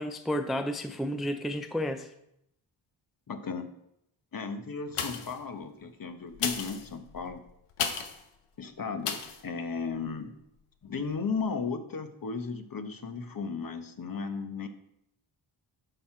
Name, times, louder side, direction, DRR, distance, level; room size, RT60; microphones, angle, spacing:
voice 1, 0.0-2.1, equal, ahead, 9 dB, 0.5 m, -31 dB
voice 2, 3.3-3.7 4.3-7.4 8.6-10.4 10.8-14.7, left 5 dB, 45° left, 8 dB, 1.0 m, -35 dB
sound 1, 4.9-5.5 6.3-8.2 9.0-9.4 9.9-10.0, left 7 dB, 90° left, 1.1 m, -34 dB
10.5 x 5.8 x 4.4 m, 0.79 s
cardioid pair, 80°, 50 cm